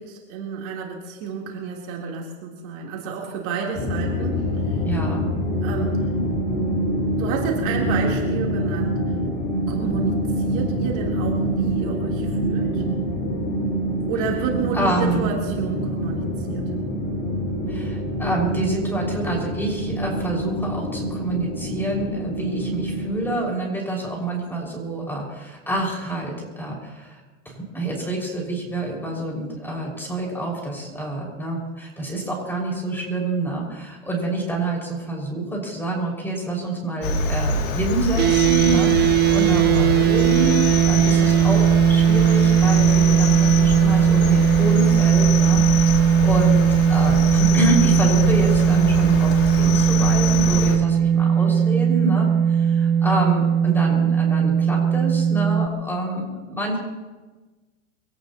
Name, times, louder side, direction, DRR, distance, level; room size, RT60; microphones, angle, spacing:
voice 1, 0.0-4.4 4.7-4.8 5.6-6.0 7.2-9.0 9.7-12.8 14.1-16.6, right 6 dB, 50° right, -2 dB, 3.5 m, -30 dB
sound 1, 3.7-23.3, equal, 35° left, 4.5 m, -25 dB
voice 2, 4.8-5.3 14.7-15.3 17.7-27.2 27.5-56.8, right 2 dB, 5° left, -2 dB, 5.6 m, -27 dB
Cricket, 37.0-50.8, left 2 dB, 70° left, 2.7 m, -25 dB
sound 2, 38.2-55.7, right 8 dB, 25° right, 0.7 m, -18 dB
24.5 x 17.5 x 3.0 m, 1.2 s
hypercardioid pair, 115°, 40 cm